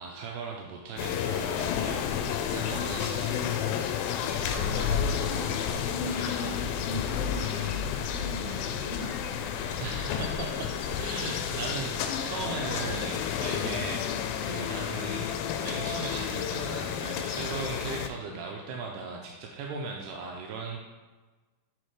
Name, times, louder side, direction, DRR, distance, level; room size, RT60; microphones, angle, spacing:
voice 1, 0.0-3.5 9.8-10.7 11.0-20.8, right 4 dB, 85° right, 0 dB, 2.1 m, -38 dB
sound 1, 1.0-18.1, left 8 dB, 80° left, 1.8 m, -31 dB
voice 2, 4.4-9.5, left 1 dB, 50° right, -6 dB, 3.0 m, -39 dB
6.4 x 4.2 x 4.8 m, 1.3 s
omnidirectional pair, 3.8 m